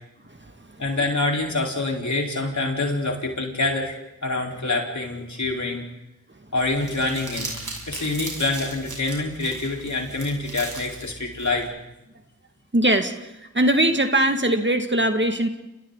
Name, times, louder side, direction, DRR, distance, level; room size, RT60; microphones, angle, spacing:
voice 1, 0.3-0.8 6.3-6.4 7.9-8.1 12.7-15.5, right 1 dB, 35° right, 5 dB, 2.3 m, -22 dB
voice 2, 0.8-4.0 4.2-5.8 6.5-7.6 7.9-11.7, left 2 dB, 60° left, 0 dB, 4.7 m, -26 dB
Crumpling crinkling, 6.6-11.6, right 2 dB, 65° right, 7.1 m, -37 dB
30.0 x 28.5 x 4.1 m, 0.91 s
cardioid pair, 40°, 33 cm